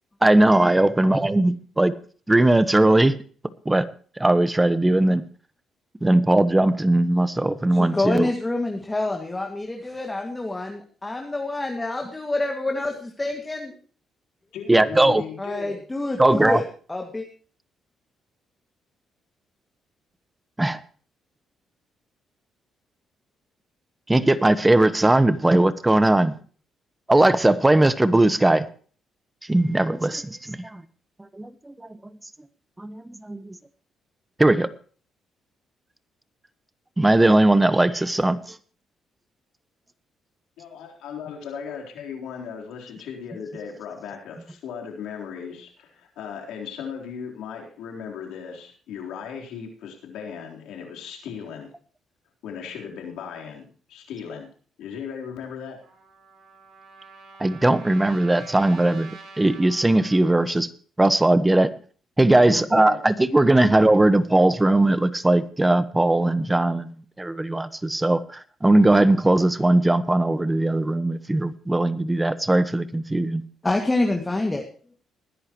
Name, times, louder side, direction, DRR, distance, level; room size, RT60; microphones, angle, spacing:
voice 1, 0.2-1.9 2.3-3.2 3.6-3.9 4.2-5.2 6.0-8.3 14.7-15.2 16.2-16.6 20.6-20.8 24.1-26.3 27.1-28.7 29.5-30.8 31.2-31.7 32.8-33.5 34.4-34.7 37.0-38.6 57.4-59.1 59.4-60.7 61.0-61.7 62.2-73.4, right 1 dB, 15° right, 14 dB, 1.2 m, -19 dB
voice 2, 7.7-13.8 15.4-16.6 16.9-17.3 73.6-74.6, left 2 dB, 15° left, 3 dB, 2.2 m, -27 dB
voice 3, 14.5-15.8 40.6-51.7 52.4-54.5 54.8-55.8 60.5-60.6 62.3-63.0 63.5-63.6, left 7 dB, 85° left, 1 dB, 3.9 m, -37 dB
Trumpet, 55.8-60.5, right 4 dB, 65° right, 4.9 m, -46 dB
20.5 x 11.0 x 3.1 m, 0.41 s
cardioid pair, 90°, 0 cm